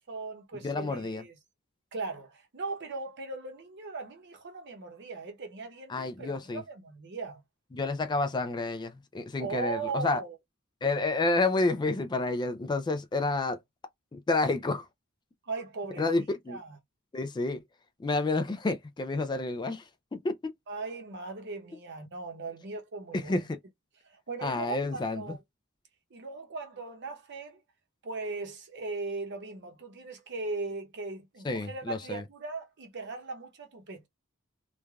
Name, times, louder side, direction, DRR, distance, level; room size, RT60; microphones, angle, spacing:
voice 1, 0.1-1.3 1.9-7.4 9.4-10.4 15.5-16.1 16.5-16.8 20.7-23.5 24.0-25.4 26.1-27.6 28.0-34.1, right 3 dB, 60° right, 0.8 m, -38 dB
voice 2, 0.6-1.2 5.9-6.6 7.7-10.2 10.8-13.6 14.1-14.9 16.0-16.6 17.1-17.6 18.0-20.4 23.1-23.6 24.4-25.4 31.4-32.2, left 3 dB, 20° left, 0.3 m, -29 dB
3.2 x 2.2 x 2.3 m
head